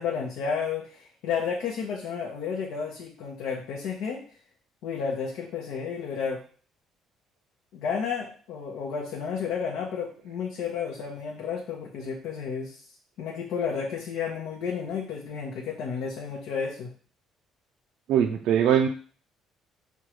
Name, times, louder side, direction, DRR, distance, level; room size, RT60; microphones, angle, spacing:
voice 1, 0.0-4.2 4.8-6.4 7.7-12.8 13.2-16.9, left 6 dB, 80° left, -2 dB, 0.7 m, -32 dB
voice 2, 18.1-18.9, right 9 dB, 65° right, 4 dB, 0.3 m, -21 dB
6.1 x 2.3 x 3.0 m, 0.43 s
cardioid pair, 145°, 0 cm